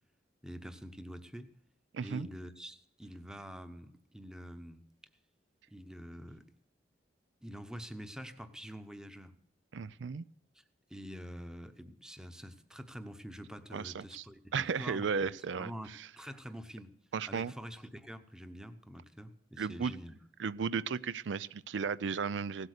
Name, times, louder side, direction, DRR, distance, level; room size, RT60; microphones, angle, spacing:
voice 1, 0.4-1.5 2.0-4.9 5.7-6.4 7.4-9.3 10.5-10.6 10.9-15.9 16.2-16.9 17.3-20.2, equal, 5° right, 0.9 m, -46 dB
voice 2, 1.9-2.3 9.7-10.2 13.7-14.2 14.5-16.1 17.1-17.5 19.6-19.9 20.4-22.7, right 5 dB, 80° right, 0.4 m, -35 dB
17.0 x 8.2 x 6.6 m
head